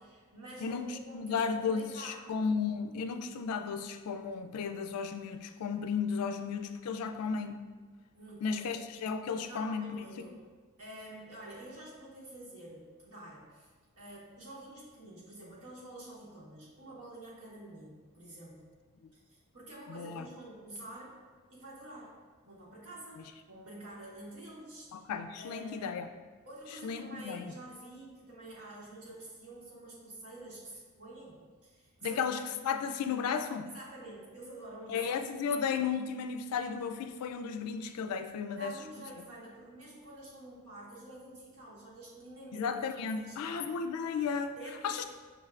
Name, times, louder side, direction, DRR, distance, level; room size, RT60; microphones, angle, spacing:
voice 1, 0.0-2.3 8.1-8.8 9.4-10.4 10.8-18.7 19.1-21.2 21.5-22.2 22.5-24.9 25.4-26.0 26.4-32.2 33.6-35.0 38.5-42.8 43.1-43.7 44.6-45.0, right 1 dB, 75° right, -5 dB, 1.3 m, -48 dB
voice 2, 0.6-7.6 8.4-10.2 19.9-20.3 24.9-26.1 26.8-27.5 32.0-33.7 34.9-38.8 42.5-44.6 44.8-45.0, left 6 dB, 90° left, 9 dB, 0.3 m, -34 dB
5.3 x 3.2 x 2.4 m, 1.4 s
head